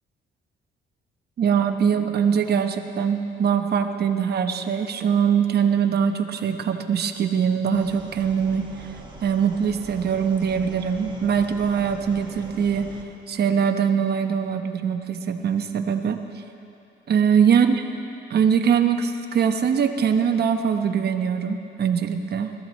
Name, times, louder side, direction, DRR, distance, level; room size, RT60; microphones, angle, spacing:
voice 1, 1.4-8.9 9.2-12.9 13.3-16.2 17.1-17.8 18.3-22.5, right 7 dB, 55° right, 6 dB, 0.9 m, -22 dB
sound 1, 7.7-13.0, right 2 dB, 20° right, 1.7 m, -43 dB
20.0 x 14.0 x 3.2 m, 2.8 s
cardioid pair, 90°, 20 cm